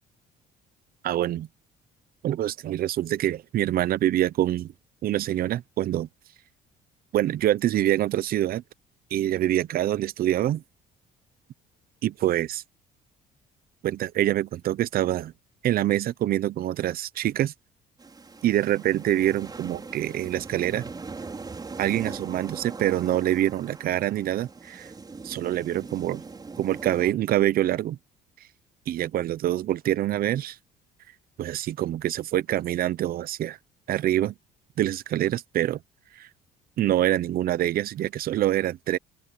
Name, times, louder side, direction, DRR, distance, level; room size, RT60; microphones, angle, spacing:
voice 1, 1.0-1.5 2.2-4.7 5.0-6.1 7.1-8.6 9.1-10.6 12.0-12.6 13.8-15.3 15.6-17.5 18.4-20.8 21.8-24.9 25.2-26.2 26.6-28.0 28.9-30.6 31.4-33.6 33.9-34.3 34.8-35.8 36.2-36.3 36.8-39.0, right 13 dB, 60° right, 0.9 m, -25 dB
sound 1, 18.0-27.1, right 4 dB, 25° right, 5.7 m, -40 dB
open air
cardioid pair, 110°, 17 cm